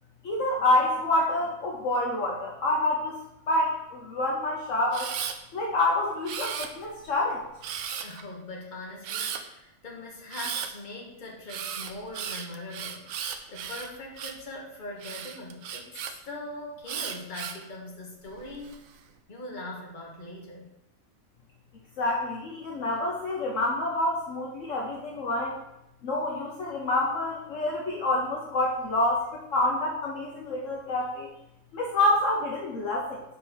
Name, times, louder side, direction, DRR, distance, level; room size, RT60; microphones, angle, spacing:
voice 1, 0.2-3.2 3.5-5.1 5.5-7.4 22.0-25.6 26.0-31.3 31.7-33.2, left 2 dB, 65° left, -1 dB, 1.1 m, -27 dB
Camera, 4.9-5.4 6.3-7.0 7.6-8.2 9.0-9.4 10.3-10.7 11.5-14.5 15.0-16.1 16.9-17.6 18.3-18.8, right 8 dB, 75° right, 1.0 m, -35 dB
voice 2, 8.0-18.8 19.3-20.7, left 2 dB, 35° left, -2 dB, 1.4 m, -41 dB
5.4 x 5.3 x 4.3 m, 0.86 s
omnidirectional pair, 1.5 m